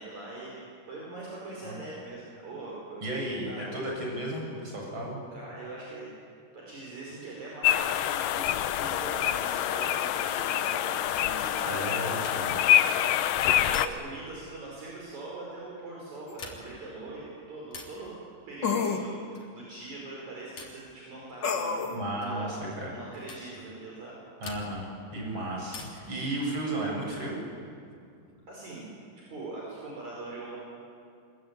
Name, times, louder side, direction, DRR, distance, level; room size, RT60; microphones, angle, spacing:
voice 1, 0.0-3.1 3.5-3.8 5.3-6.1 6.5-8.5 8.8-11.7 12.9-13.2 13.6-18.1 18.5-19.2 19.5-21.9 22.2-24.2 25.3-25.5 28.5-30.6, right 2 dB, 55° right, -4 dB, 6.0 m, -42 dB
voice 2, 3.0-5.2 11.6-12.6 21.9-23.0 24.4-27.4, right 1 dB, 35° right, -2 dB, 8.6 m, -34 dB
sound 1, 7.6-13.9, left 11 dB, 80° left, 2.5 m, -26 dB
sound 2, 12.2-12.7 13.7-14.3 16.2-16.9 17.7-18.1 19.3-19.7 20.6-20.9 22.2-22.4 23.3-23.5 24.4-25.0 25.7-26.2 27.6-28.3, left 4 dB, 60° left, 4.7 m, -45 dB
sound 3, 16.3-16.4 18.6-19.0 21.4-22.0, left 5 dB, 40° left, 2.2 m, -28 dB
26.0 x 22.0 x 9.4 m, 2.4 s
omnidirectional pair, 3.9 m